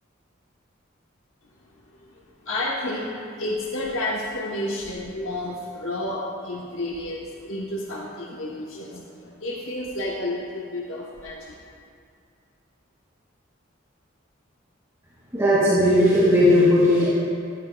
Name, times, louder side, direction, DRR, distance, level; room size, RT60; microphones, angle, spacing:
voice 1, 2.0-11.6, left 1 dB, 75° left, -3 dB, 1.0 m, -31 dB
voice 2, 15.3-17.1, left 1 dB, 15° right, -11 dB, 2.2 m, -17 dB
14.5 x 12.5 x 2.3 m, 2.3 s
head